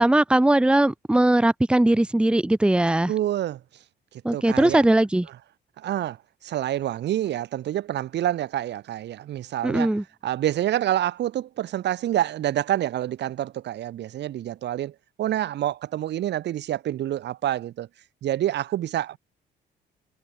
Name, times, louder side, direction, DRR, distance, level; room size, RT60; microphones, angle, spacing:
voice 1, 0.0-3.1 4.2-5.3 9.6-10.0, right 1 dB, 5° right, 1.0 m, -20 dB
voice 2, 3.1-3.6 4.3-4.8 5.8-6.2 6.4-9.9 10.2-17.9 18.2-19.2, right 12 dB, 65° right, 1.2 m, -27 dB
cardioid pair, 110°, 19 cm